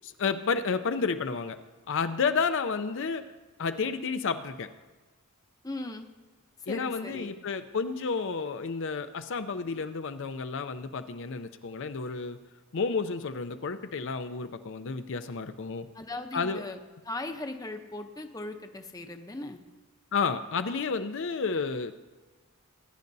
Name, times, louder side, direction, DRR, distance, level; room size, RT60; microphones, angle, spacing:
voice 1, 0.0-1.6 1.9-3.2 3.6-4.7 6.7-12.4 12.7-15.9 16.3-16.6 20.1-21.9, left 5 dB, 60° left, 9 dB, 0.5 m, -31 dB
voice 2, 5.6-6.1 6.7-7.3 15.9-16.8 17.0-19.6, left 2 dB, 15° left, 6 dB, 0.7 m, -38 dB
20.0 x 10.5 x 2.7 m, 1.2 s
head